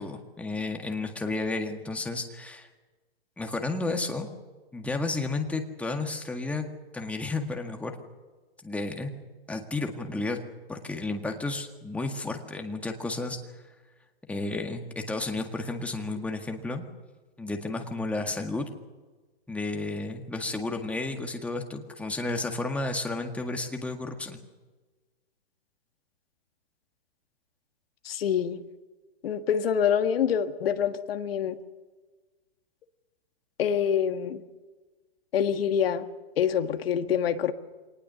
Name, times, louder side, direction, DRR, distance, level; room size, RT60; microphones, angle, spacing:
voice 1, 0.0-2.7 3.4-4.3 4.7-8.0 8.6-9.1 9.5-10.4 10.7-13.4 14.3-16.8 17.4-18.7 19.5-24.4, left 2 dB, 5° left, 4 dB, 1.8 m, -32 dB
voice 2, 28.0-28.6 29.2-31.6 33.6-34.4 35.3-36.0 36.4-37.5, left 8 dB, 65° left, 8 dB, 1.7 m, -26 dB
24.5 x 19.0 x 6.9 m, 1.2 s
hypercardioid pair, 130°, 31 cm